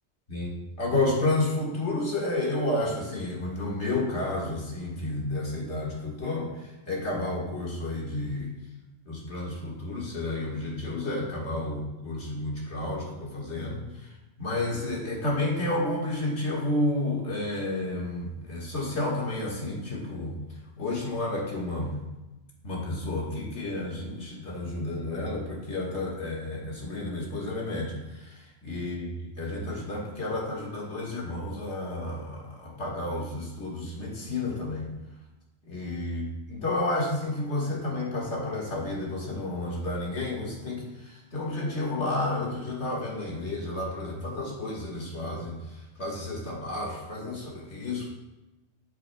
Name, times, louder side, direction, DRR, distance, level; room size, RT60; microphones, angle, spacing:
voice 1, 0.3-8.5 9.1-14.1 14.4-20.3 20.8-21.9 22.6-34.9 35.7-48.1, left 2 dB, 85° left, -4 dB, 1.9 m, -31 dB
8.5 x 7.6 x 2.2 m, 1.0 s
omnidirectional pair, 1.1 m